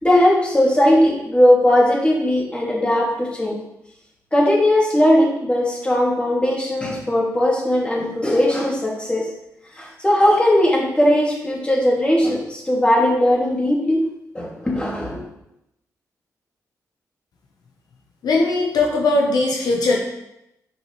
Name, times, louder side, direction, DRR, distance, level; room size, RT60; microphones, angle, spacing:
voice 1, 0.0-3.6 4.3-9.3 9.7-14.0 14.3-15.2, left 1 dB, 15° left, -4 dB, 2.3 m, -18 dB
voice 2, 18.2-20.0, left 2 dB, 80° left, -1 dB, 0.9 m, -19 dB
5.9 x 5.8 x 3.1 m, 0.86 s
cardioid pair, 70°, 7 cm